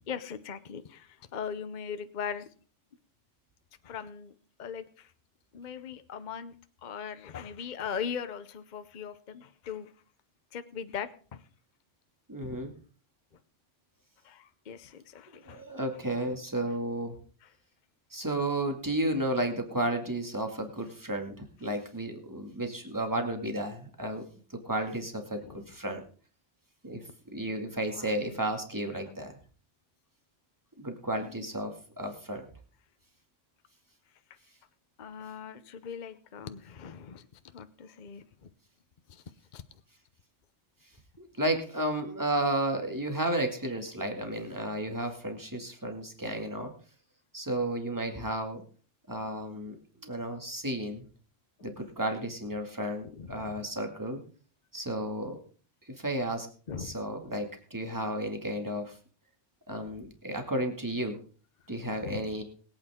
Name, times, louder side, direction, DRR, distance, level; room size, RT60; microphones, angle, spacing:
voice 1, 0.0-2.5 3.8-4.3 4.6-5.1 5.5-6.5 6.8-9.9 10.5-11.4 14.2-15.6 16.3-16.4 17.4-17.5 25.4-25.7 27.9-28.4 29.0-29.2 31.2-31.5 35.0-38.5 39.1-39.2 39.5-39.6 53.0-53.7 56.7-57.0 59.8-59.9 62.0-62.3, left 7 dB, 45° left, 11 dB, 0.9 m, -40 dB
voice 2, 12.3-12.7 15.3-17.2 18.1-24.2 24.5-26.0 26.8-27.0 27.3-29.4 30.8-32.4 41.2-46.7 47.3-48.6 49.1-49.7 50.0-51.0 51.6-54.2 54.7-55.4 55.9-56.5 56.8-59.0 59.7-61.2 61.7-62.4, right 1 dB, 15° right, 4 dB, 2.2 m, -33 dB
22.0 x 8.9 x 3.7 m, 0.40 s
omnidirectional pair, 1.3 m